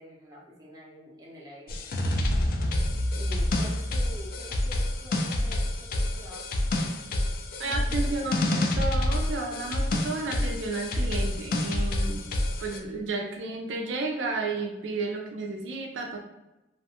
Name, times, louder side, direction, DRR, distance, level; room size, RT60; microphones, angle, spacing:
voice 1, 0.0-1.7 3.1-6.6 7.6-8.3, equal, 20° right, -4 dB, 0.7 m, -46 dB
sound 1, 1.7-12.8, left 1 dB, 50° left, 0.3 m, -28 dB
voice 2, 7.6-12.3 12.6-16.2, right 3 dB, 75° right, 2 dB, 0.4 m, -32 dB
2.4 x 2.2 x 2.7 m, 0.99 s
head